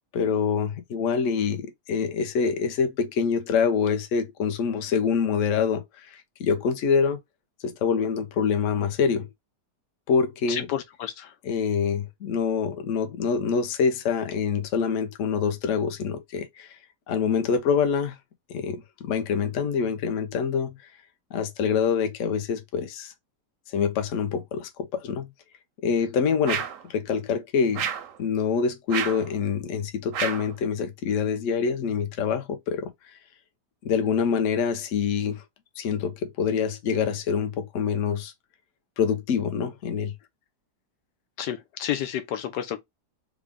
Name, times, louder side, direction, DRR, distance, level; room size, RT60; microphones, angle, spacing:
voice 1, 0.1-7.2 7.6-9.3 10.1-10.7 11.4-16.7 17.1-18.2 18.5-20.8 21.3-23.1 23.7-25.3 25.8-27.9 28.2-32.9 33.8-35.4 35.8-38.3 39.0-40.1, left 6 dB, 55° left, 1.0 m, -25 dB
voice 2, 10.5-11.3 41.4-42.8, left 10 dB, 85° left, 1.3 m, -30 dB
sound 1, 26.4-26.9 27.7-28.2 28.9-29.3 30.1-30.5, right 8 dB, 65° right, 0.8 m, -30 dB
3.7 x 2.3 x 3.6 m
omnidirectional pair, 1.8 m